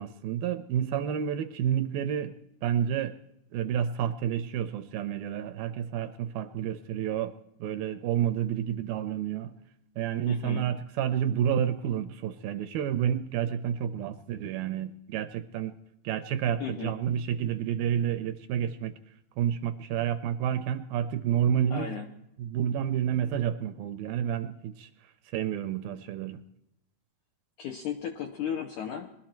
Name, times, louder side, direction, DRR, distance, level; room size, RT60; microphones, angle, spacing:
voice 1, 0.0-2.3 2.6-3.1 3.5-7.3 7.6-9.5 10.0-15.7 16.0-18.9 19.4-21.9 22.4-24.9 25.3-26.4, right 9 dB, 80° right, 11 dB, 2.2 m, -29 dB
voice 2, 10.3-10.6 16.6-17.0 21.7-22.1 27.6-29.1, left 8 dB, 75° left, 3 dB, 1.8 m, -35 dB
21.0 x 12.5 x 4.4 m, 0.81 s
omnidirectional pair, 4.6 m